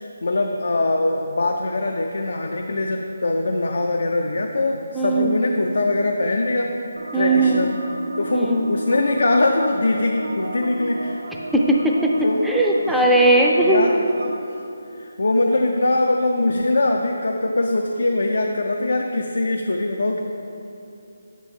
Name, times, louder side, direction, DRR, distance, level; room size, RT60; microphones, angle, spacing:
voice 1, 0.0-6.7 7.1-7.7 8.2-11.2 12.2-12.5 12.9-13.1 13.6-14.3 14.9-20.2, left 2 dB, 65° left, 2 dB, 0.4 m, -22 dB
voice 2, 4.9-5.3 7.1-7.7 8.3-8.7 11.5-12.1 12.4-13.9, right 2 dB, ahead, -2 dB, 0.4 m, -18 dB
sound 1, 7.0-14.3, right 1 dB, 80° right, 0.8 m, -33 dB
7.3 x 5.2 x 3.5 m, 2.7 s
figure-of-eight pair, 150°, 0 cm